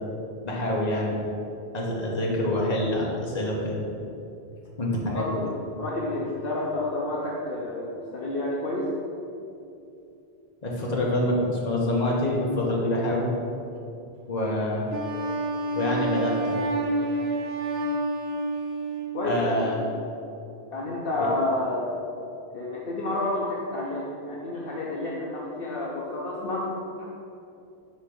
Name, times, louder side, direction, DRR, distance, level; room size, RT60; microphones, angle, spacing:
voice 1, 0.4-1.2 1.7-3.8 4.8-5.2 10.6-13.3 14.3-14.9 15.7-16.6 19.2-19.7, left 1 dB, 40° left, -3 dB, 1.2 m, -26 dB
voice 2, 5.1-8.9 19.1-19.9 20.7-21.9 22.5-27.0, left 2 dB, 60° left, -4 dB, 0.9 m, -30 dB
Wind instrument woodwind instrument, 14.9-19.2, right 1 dB, 75° right, 0.9 m, -28 dB
5.4 x 4.5 x 5.2 m, 2.7 s
omnidirectional pair, 1.1 m